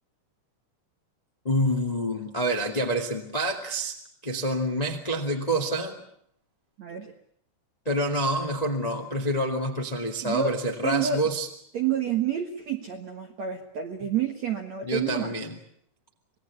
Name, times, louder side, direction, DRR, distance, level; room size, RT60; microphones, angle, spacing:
voice 1, 1.4-3.9 4.2-6.0 7.8-11.5 14.8-15.5, right 1 dB, 20° left, 3 dB, 1.0 m, -27 dB
voice 2, 6.8-7.1 10.2-10.5 10.8-11.2 11.7-15.3, right 8 dB, 60° right, 4 dB, 1.9 m, -29 dB
26.5 x 19.5 x 8.5 m, 0.66 s
omnidirectional pair, 5.2 m